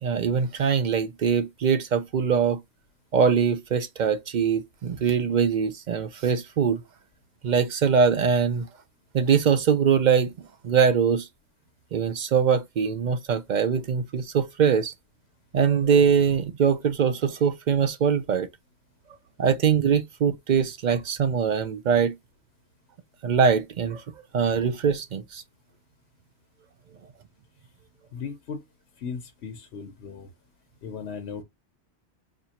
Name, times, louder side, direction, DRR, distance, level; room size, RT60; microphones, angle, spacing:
voice 1, 0.0-2.6 3.1-6.8 7.4-8.7 9.1-10.3 10.6-11.3 11.9-14.9 15.5-18.5 19.4-22.1 23.2-24.0 24.3-25.4, right 6 dB, 55° right, 0.5 m, -22 dB
voice 2, 28.1-28.6 29.0-30.3 30.8-31.4, left 6 dB, 75° left, 1.0 m, -36 dB
4.2 x 2.6 x 2.8 m
omnidirectional pair, 1.1 m